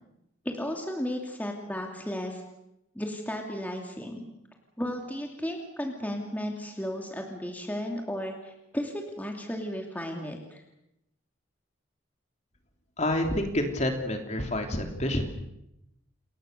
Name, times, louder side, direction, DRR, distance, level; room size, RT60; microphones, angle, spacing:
voice 1, 0.4-2.4 2.9-4.2 4.8-10.6, equal, 10° left, 2 dB, 2.7 m, -34 dB
voice 2, 13.0-15.3, left 1 dB, 35° left, 4 dB, 3.3 m, -28 dB
29.0 x 22.5 x 6.8 m, 0.83 s
head